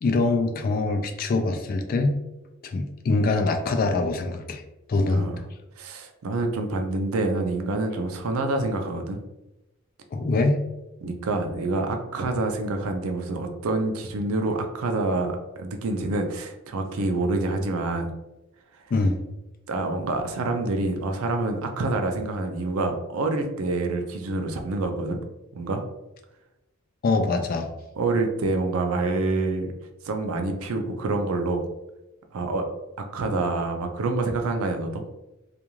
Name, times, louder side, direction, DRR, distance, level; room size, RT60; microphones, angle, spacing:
voice 1, 0.0-2.2 2.6-4.6 4.9-5.3 10.1-10.6 18.9-19.2 27.0-27.7, left 3 dB, 45° left, 4 dB, 0.3 m, -23 dB
voice 2, 5.1-5.4 5.8-9.2 11.0-18.1 19.7-25.2 25.5-25.8 28.0-29.7 30.0-31.6 32.3-32.7 33.1-35.1, right 2 dB, 85° right, 5 dB, 0.4 m, -27 dB
2.4 x 2.3 x 3.0 m, 0.96 s
head